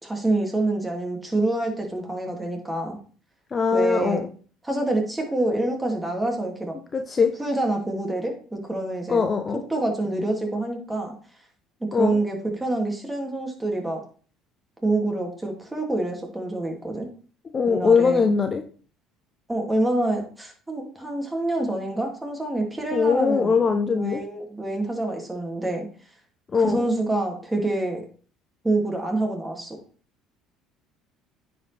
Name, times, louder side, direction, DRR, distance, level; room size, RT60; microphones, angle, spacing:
voice 1, 0.0-3.0 3.7-4.2 4.6-6.7 7.4-9.2 9.7-11.1 11.9-14.0 14.8-17.1 17.7-18.3 19.5-23.6 23.9-25.9 26.5-28.0 28.6-29.8, right 2 dB, 10° right, 2 dB, 2.5 m, -26 dB
voice 2, 3.5-4.3 6.9-7.3 9.1-9.6 11.9-12.2 17.5-18.6 22.9-24.2 26.5-26.8, left 5 dB, 35° left, 6 dB, 0.8 m, -21 dB
9.3 x 5.0 x 3.4 m, 0.41 s
hypercardioid pair, 75°, 0 cm